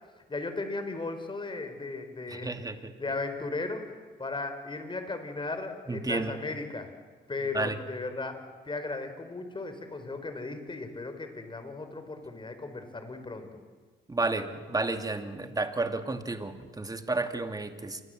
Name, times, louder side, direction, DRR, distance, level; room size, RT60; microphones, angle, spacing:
voice 1, 0.3-2.5 3.0-6.9 7.3-13.5, left 3 dB, 25° left, 8 dB, 4.5 m, -36 dB
voice 2, 2.3-2.9 5.9-6.3 7.5-7.8 14.1-18.0, right 2 dB, 20° right, 7 dB, 2.5 m, -31 dB
27.5 x 22.5 x 7.9 m, 1.5 s
cardioid pair, 90°, 20 cm